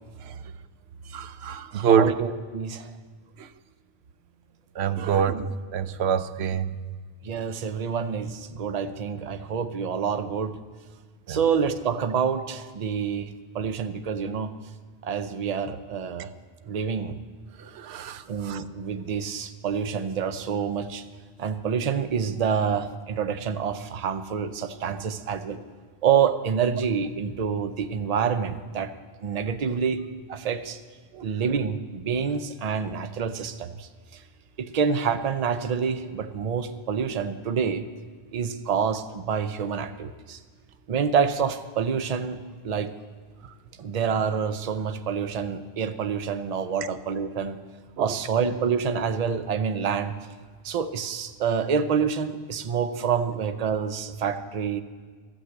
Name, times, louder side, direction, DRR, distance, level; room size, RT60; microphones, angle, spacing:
voice 1, 1.1-2.1 3.4-3.5 4.8-6.7 11.3-11.4 17.6-18.6 31.1-31.3 48.0-48.1, right 7 dB, 90° right, 12 dB, 0.9 m, -26 dB
voice 2, 1.9-2.9 5.1-5.4 7.2-10.6 11.3-14.5 15.0-16.3 16.7-17.2 18.3-21.0 21.4-25.6 26.0-28.9 29.2-30.0 30.3-30.8 31.2-34.2 34.6-37.8 38.3-40.4 40.9-42.4 42.6-42.9 43.8-47.6 48.0-50.1 50.6-54.8, right 6 dB, 45° right, 10 dB, 0.6 m, -27 dB
13.0 x 6.2 x 8.1 m, 1.5 s
omnidirectional pair, 1.0 m